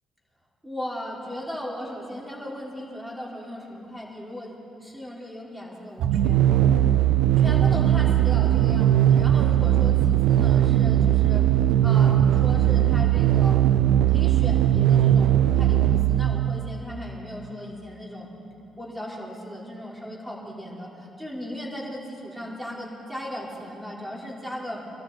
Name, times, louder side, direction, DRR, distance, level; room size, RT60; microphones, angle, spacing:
voice 1, 0.6-4.5 4.8-6.7 7.4-11.5 11.8-13.6 14.1-18.3 18.8-24.8, equal, 10° right, -4 dB, 4.5 m, -37 dB
sound 1, 6.0-16.7, right 11 dB, 85° right, 0.5 m, -19 dB
24.0 x 13.0 x 4.3 m, 2.8 s
cardioid pair, 75°, 0 cm